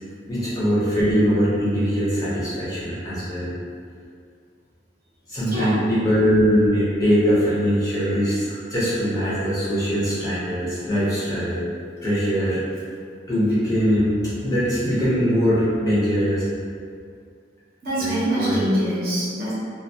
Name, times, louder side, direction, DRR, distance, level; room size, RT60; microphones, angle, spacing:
voice 1, 0.3-3.5 5.3-11.6 12.0-12.6 13.3-14.1 14.4-16.5 18.0-18.7, equal, 20° left, -10 dB, 0.6 m, -21 dB
voice 2, 5.5-5.8 17.8-19.5, equal, 50° right, -8 dB, 0.7 m, -24 dB
2.2 x 2.2 x 2.6 m, 2.2 s
head